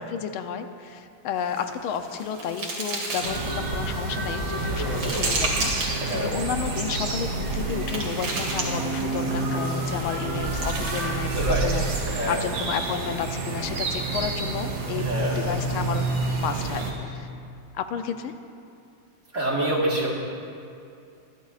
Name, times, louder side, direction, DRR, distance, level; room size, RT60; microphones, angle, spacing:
voice 1, 0.1-5.7 6.1-17.3 17.7-18.3, left 7 dB, 85° left, 8 dB, 1.5 m, -32 dB
sound 1, 1.4-3.7 4.2-6.2 7.1-9.2 10.2-11.8, right 2 dB, 90° right, 2.9 m, -33 dB
sound 2, 3.2-16.9, right 3 dB, 65° right, 2.3 m, -28 dB
voice 2, 4.8-5.3 6.0-6.3 11.3-11.7 12.1-12.4 14.9-15.4 19.3-20.1, right 1 dB, 40° right, -3 dB, 1.9 m, -27 dB
24.5 x 11.5 x 2.4 m, 2.5 s
omnidirectional pair, 2.3 m